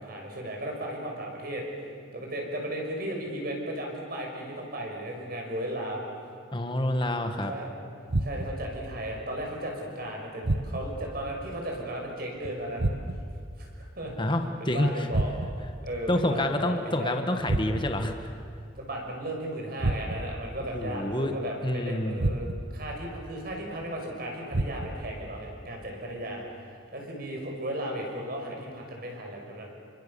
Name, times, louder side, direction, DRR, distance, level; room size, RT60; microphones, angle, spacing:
voice 1, 0.0-1.6 2.1-6.0 7.4-7.7 8.2-12.9 13.6-14.1 14.6-15.3 15.8-17.1 18.8-29.7, right 1 dB, 50° right, 0 dB, 6.0 m, -35 dB
voice 2, 6.5-7.5 14.2-15.1 16.1-18.3 20.7-21.3 21.6-22.2, left 1 dB, 25° left, 5 dB, 1.6 m, -28 dB
sound 1, 8.1-8.7 10.4-11.1 12.8-13.4 15.1-15.8 17.5-18.1 19.8-20.4 22.2-22.8 24.5-25.1, right 2 dB, 70° right, 1.2 m, -30 dB
28.5 x 24.5 x 7.1 m, 2.2 s
head